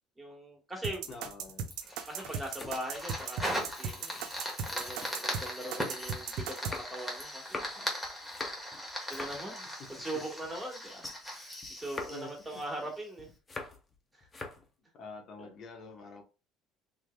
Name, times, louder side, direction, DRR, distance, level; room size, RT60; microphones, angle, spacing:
voice 1, 0.2-1.1 2.1-4.3 4.6-7.9 9.1-13.3 14.1-14.3 15.4-15.5, right 1 dB, 15° right, 1.4 m, -41 dB
sound 1, 0.8-6.8, right 6 dB, 70° right, 0.5 m, -37 dB
sound 2, 1.0-5.1 5.5-11.4 11.6-14.0 14.2-14.7, left 3 dB, 25° left, 0.8 m, -46 dB
voice 2, 1.1-1.7 10.1-10.2 12.1-12.6 14.9-16.2, left 3 dB, 55° left, 0.9 m, -46 dB
Fire, 1.7-13.1, equal, 10° left, 1.3 m, -39 dB
3.5 x 3.1 x 2.2 m
supercardioid pair, 100°, 0 cm